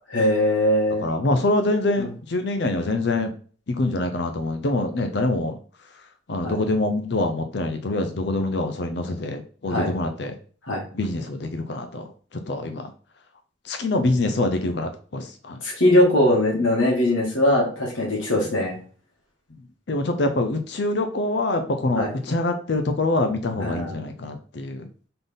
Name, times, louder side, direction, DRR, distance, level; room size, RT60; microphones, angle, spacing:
voice 1, 0.1-1.0 2.0-2.1 6.4-6.5 9.7-9.9 10.7-10.8 15.6-18.8 22.0-22.1 23.6-23.9, left 1 dB, 85° left, -2 dB, 1.9 m, -21 dB
voice 2, 1.0-3.3 3.7-5.6 6.3-10.4 10.9-12.9 13.6-15.6 18.4-18.5 19.9-24.9, left 2 dB, 60° left, 6 dB, 0.5 m, -25 dB
3.9 x 3.8 x 3.5 m, 0.42 s
head